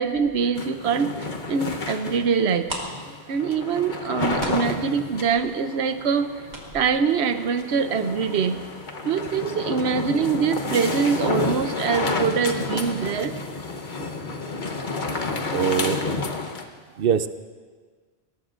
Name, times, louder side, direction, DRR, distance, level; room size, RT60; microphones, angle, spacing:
voice 1, 0.0-2.7 3.3-6.3 6.7-8.6 9.0-13.3, right 6 dB, 90° right, 10 dB, 1.0 m, -24 dB
sound 1, 0.5-16.6, left 3 dB, 50° left, 1.1 m, -30 dB
sound 2, 2.6-8.2 8.5-8.6 9.0-9.2 9.5-9.6, right 1 dB, 45° right, 2.1 m, -38 dB
voice 2, 15.5-16.0 17.0-17.3, right 8 dB, 65° right, 12 dB, 0.8 m, -22 dB
21.5 x 18.0 x 2.5 m, 1.5 s
omnidirectional pair, 1.1 m